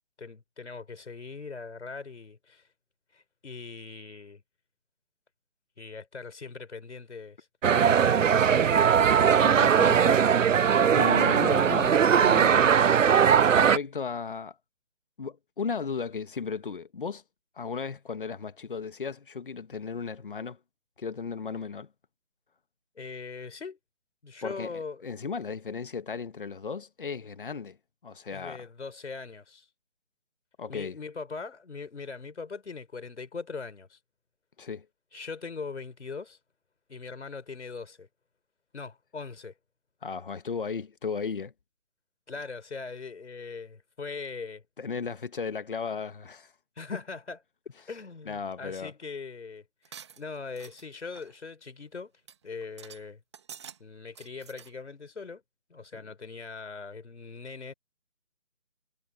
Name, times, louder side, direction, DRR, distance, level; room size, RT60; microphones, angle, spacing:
voice 1, 0.2-2.7 3.1-4.4 5.8-7.4 7.7-8.8 23.0-23.8 24.2-25.1 28.3-29.7 30.7-34.0 35.1-36.4 36.9-38.1 38.7-39.5 42.3-44.6 46.8-47.4 47.9-52.1 52.4-53.2 53.8-55.4 55.7-57.7, left 4 dB, 65° left, 4.4 m, -41 dB
sound 1, 7.6-13.8, right 7 dB, 90° right, 0.7 m, -20 dB
voice 2, 9.4-10.3 10.9-12.7 13.5-14.6 15.2-17.2 17.6-20.6 21.0-21.9 24.4-24.7 25.0-27.8 28.0-28.6 30.6-31.0 34.6-34.9 40.0-41.5 44.8-46.5 46.9-47.0 48.2-48.9 55.9-56.0, left 5 dB, 45° left, 1.5 m, -35 dB
sound 2, 49.9-50.9 51.1-51.4 51.8-51.9 52.3-52.4 52.6-53.0 53.3-53.8 54.1-54.7, right 7 dB, 20° right, 2.2 m, -47 dB
hypercardioid pair, 175°, 37 cm